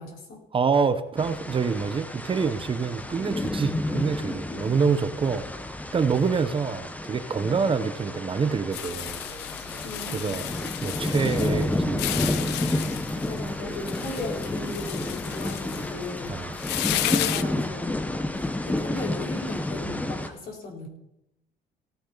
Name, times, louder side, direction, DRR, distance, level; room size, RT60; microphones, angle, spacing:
voice 1, 0.0-0.4 4.5-4.8 9.8-10.5 13.2-16.4 16.9-18.0 18.3-20.9, left 2 dB, 60° left, 0 dB, 4.2 m, -37 dB
voice 2, 0.5-5.4 5.9-9.2 10.1-10.5 10.8-12.6 16.3-16.5, right 5 dB, 30° right, 11 dB, 0.9 m, -26 dB
sound 1, 1.2-20.3, left 1 dB, 10° left, 1.0 m, -31 dB
sound 2, 8.0-15.0, right 7 dB, 75° right, 2.5 m, -49 dB
sound 3, 8.7-17.4, left 14 dB, 90° left, 0.7 m, -33 dB
17.5 x 9.9 x 4.0 m, 0.85 s
cardioid pair, 110°, 17 cm